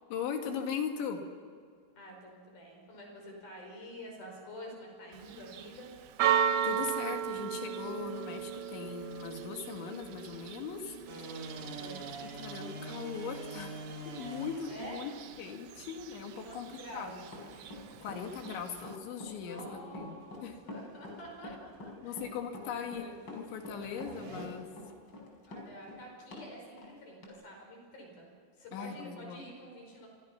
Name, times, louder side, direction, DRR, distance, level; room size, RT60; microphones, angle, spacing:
voice 1, 0.1-1.2 6.3-10.9 11.3-11.5 12.4-15.1 15.4-16.7 16.9-17.2 17.6-17.7 18.0-19.6 19.9-20.6 22.0-24.7 28.7-29.4, left 7 dB, 75° left, 4 dB, 4.4 m, -39 dB
voice 2, 2.0-5.9 11.5-12.3 14.7-15.0 16.4-17.1 19.4-22.3 22.6-23.2 25.5-30.1, equal, 50° left, 1 dB, 7.0 m, -48 dB
Church bell, 5.1-19.0, right 9 dB, 70° right, 2.8 m, -37 dB
sound 1, 11.1-24.5, right 2 dB, 45° right, 4.5 m, -48 dB
Run, 17.2-26.5 26.8-26.9 27.2-27.3, left 2 dB, 25° left, 5.3 m, -45 dB
28.5 x 24.5 x 5.9 m, 2.1 s
omnidirectional pair, 5.4 m